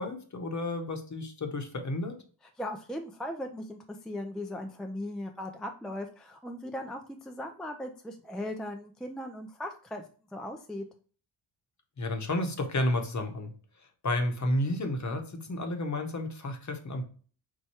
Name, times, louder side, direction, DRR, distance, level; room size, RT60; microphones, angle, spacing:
voice 1, 0.0-2.2 12.0-13.5 14.0-17.0, left 1 dB, 40° left, 5 dB, 1.0 m, -31 dB
voice 2, 2.6-10.0 10.3-10.9, left 1 dB, ahead, 4 dB, 0.4 m, -38 dB
4.6 x 2.2 x 4.2 m, 0.41 s
cardioid pair, 70°, 47 cm